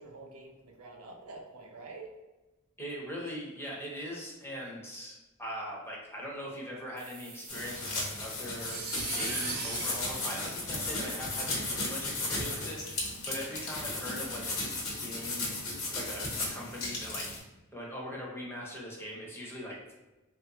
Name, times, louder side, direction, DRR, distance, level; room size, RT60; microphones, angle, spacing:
voice 1, 0.0-2.1, right 3 dB, 85° right, 1 dB, 0.6 m, -47 dB
voice 2, 2.8-8.8 9.1-13.0 13.3-14.5 15.0-15.6 15.9-17.3 17.7-19.9, equal, 10° left, -3 dB, 0.6 m, -41 dB
sound 1, 7.0-11.3, right 4 dB, 45° right, 0.6 m, -40 dB
sound 2, 7.5-17.4, left 2 dB, 70° left, 1.1 m, -35 dB
3.1 x 2.4 x 2.9 m, 1.1 s
head